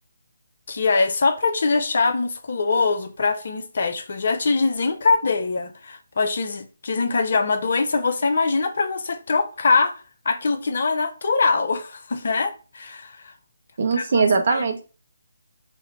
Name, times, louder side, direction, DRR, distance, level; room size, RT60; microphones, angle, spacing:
voice 1, 0.7-9.9 10.2-13.3 14.0-14.2 14.5-14.6, left 4 dB, 50° left, 0.6 m, -23 dB
voice 2, 13.8-14.9, right 4 dB, 50° right, 0.8 m, -21 dB
4.1 x 2.2 x 4.6 m
figure-of-eight pair, 145°, 0 cm